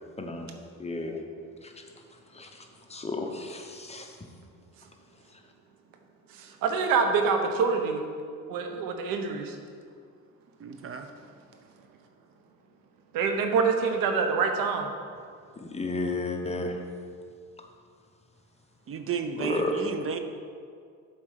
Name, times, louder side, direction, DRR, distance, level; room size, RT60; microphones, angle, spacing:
voice 1, 0.2-0.5 0.8-1.2 1.6-1.7 2.3-2.5 2.9-4.1 15.7-16.8 19.4-19.7, left 2 dB, 20° left, 3 dB, 0.9 m, -32 dB
voice 2, 6.4-8.0 8.5-9.6 13.1-14.9, right 5 dB, 80° right, 5 dB, 1.0 m, -26 dB
voice 3, 10.6-11.1 18.9-20.2, right 6 dB, 40° right, 7 dB, 0.7 m, -32 dB
7.4 x 4.4 x 6.6 m, 2.2 s
cardioid pair, 90°, 34 cm